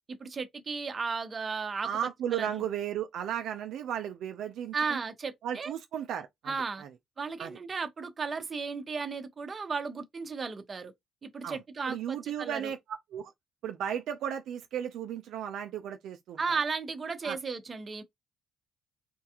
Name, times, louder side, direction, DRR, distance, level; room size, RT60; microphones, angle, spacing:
voice 1, 0.1-1.9 2.3-2.6 4.7-5.7 6.5-6.8 7.2-10.9 11.2-12.7 16.4-18.0, right 5 dB, 35° right, 0.9 m, -35 dB
voice 2, 1.8-5.0 5.4-6.9 7.4-7.6 11.4-11.6 11.9-12.8 13.1-13.3 13.6-16.4 17.2-17.4, right 9 dB, 75° right, 0.5 m, -35 dB
4.4 x 2.3 x 2.9 m
cardioid pair, 85°, 0 cm